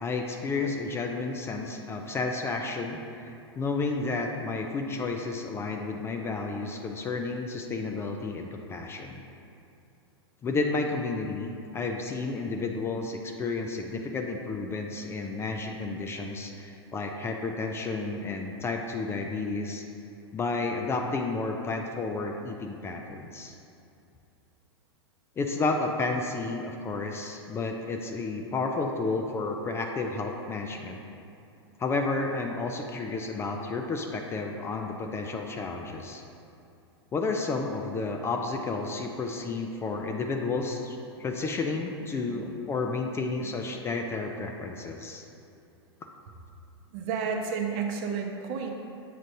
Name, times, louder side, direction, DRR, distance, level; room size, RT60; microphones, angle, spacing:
voice 1, 0.0-9.2 10.4-19.8 20.3-23.6 25.4-31.0 31.8-36.2 37.1-45.2, left 3 dB, 20° left, 3 dB, 0.4 m, -31 dB
voice 2, 42.3-42.8 43.2-43.6 44.2-44.3 46.9-48.7, right 6 dB, 45° right, 2 dB, 0.7 m, -33 dB
7.5 x 5.1 x 2.6 m, 2.6 s
hypercardioid pair, 105°, 14 cm